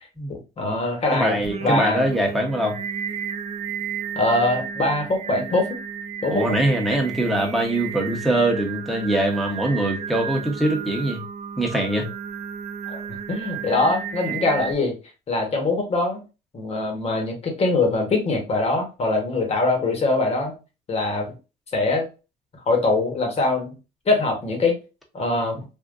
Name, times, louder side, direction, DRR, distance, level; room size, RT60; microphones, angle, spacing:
voice 1, 0.3-2.1 4.1-5.8 6.2-6.4 12.8-13.0 13.3-14.9 15.3-16.2 16.5-20.5 20.9-21.3 21.7-22.1 22.7-23.7 24.1-24.8 25.1-25.6, left 2 dB, 35° left, 2 dB, 1.2 m, -23 dB
voice 2, 1.1-2.8 6.3-11.2 11.6-12.1, right 1 dB, ahead, 0 dB, 1.0 m, -23 dB
Singing, 1.4-14.7, right 7 dB, 40° right, 0.5 m, -32 dB
3.6 x 2.5 x 2.5 m, 0.31 s
cardioid pair, 110°, 17 cm